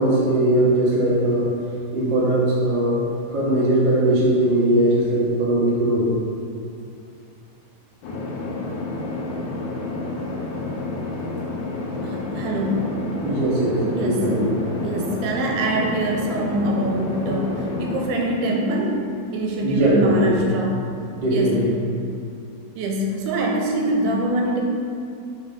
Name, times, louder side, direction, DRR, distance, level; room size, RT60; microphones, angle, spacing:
voice 1, 0.0-1.5 1.9-6.1 13.2-14.5 17.2-17.5 19.6-20.4 21.2-21.7, right 1 dB, 65° right, -7 dB, 1.1 m, -20 dB
sound 1, 8.0-18.1, left 2 dB, 80° left, 1.7 m, -29 dB
voice 2, 12.0-13.0 13.9-14.5 14.8-19.0 19.3-20.8 21.3-21.6 22.8-24.6, right 1 dB, 85° right, 0 dB, 2.6 m, -24 dB
5.8 x 4.2 x 5.4 m, 2.5 s
omnidirectional pair, 4.7 m